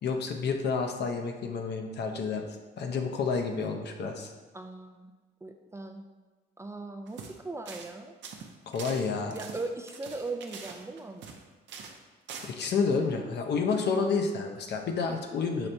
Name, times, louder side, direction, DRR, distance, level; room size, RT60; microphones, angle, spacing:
voice 1, 0.0-2.5 2.8-4.3 8.7-9.4 11.8-11.9 12.4-15.7, left 5 dB, 60° left, 3 dB, 0.6 m, -30 dB
voice 2, 4.5-5.1 5.4-6.0 6.6-8.2 9.3-11.4, right 3 dB, 15° right, 4 dB, 0.3 m, -39 dB
sound 1, 7.1-7.4 7.7-7.9 8.2-11.4 11.7-12.0 12.3-12.5, right 5 dB, 70° right, 0.6 m, -44 dB
5.8 x 3.2 x 2.6 m, 1.3 s
cardioid pair, 90°, 20 cm